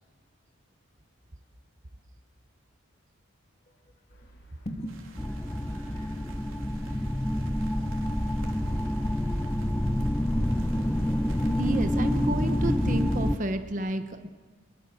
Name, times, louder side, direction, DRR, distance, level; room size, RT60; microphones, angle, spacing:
sound 1, 4.1-13.1, right 2 dB, 60° left, 4.4 m, -53 dB
voice 1, 4.6-5.0 7.2-9.9, equal, 30° left, 3 dB, 3.0 m, -44 dB
sound 2, 4.9-13.4, right 4 dB, 80° right, 3.6 m, -53 dB
sound 3, 5.2-13.4, equal, 10° left, 0.7 m, -27 dB
voice 2, 11.6-14.3, right 1 dB, 40° right, 8 dB, 1.1 m, -31 dB
25.5 x 22.0 x 7.4 m, 1.4 s
head